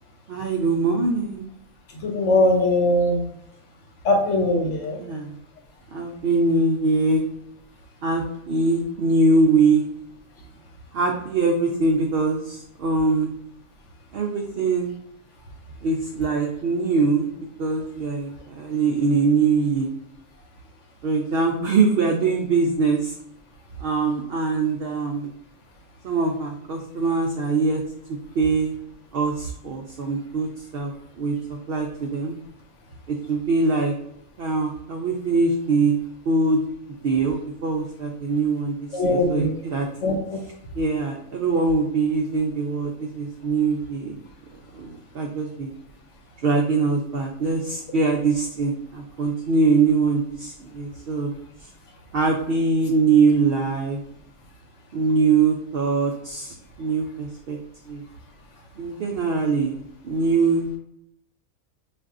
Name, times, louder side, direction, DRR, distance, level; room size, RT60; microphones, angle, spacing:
voice 1, 0.3-1.5 4.9-5.3 5.9-7.2 8.0-9.9 10.9-13.3 14.1-14.9 15.8-17.3 17.6-19.9 21.0-23.1 23.8-25.3 26.0-27.8 28.1-28.7 29.1-30.9 31.2-31.3 31.7-32.4 33.1-33.9 34.4-36.0 36.3-36.6 37.0-39.9 40.8-44.2 44.7-45.7 46.4-51.3 52.1-54.0 54.9-57.6 57.9-58.0 58.8-60.7, right 4 dB, 75° right, 1 dB, 0.5 m, -22 dB
voice 2, 2.0-3.3 4.0-5.0 38.9-39.5 40.0-40.4, left 1 dB, 60° left, 1 dB, 1.0 m, -21 dB
5.2 x 2.4 x 2.4 m, 0.74 s
omnidirectional pair, 1.5 m